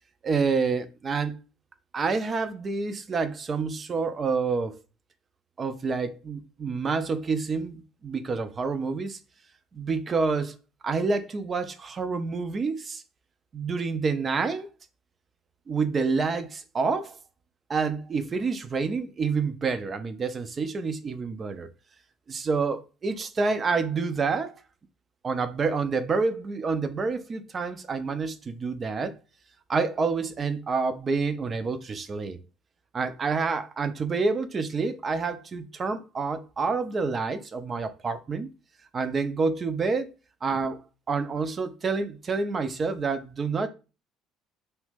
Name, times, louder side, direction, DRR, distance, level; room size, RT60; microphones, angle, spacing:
voice 1, 0.2-1.3 1.9-4.8 5.6-9.2 9.7-10.6 10.8-13.0 13.5-14.7 15.7-17.2 17.7-21.7 22.3-24.5 25.2-29.1 29.7-32.4 32.9-38.5 38.9-40.1 40.4-43.7, right 4 dB, 30° right, 0.3 m, -28 dB
2.7 x 2.1 x 3.2 m
figure-of-eight pair, 55°, 0 cm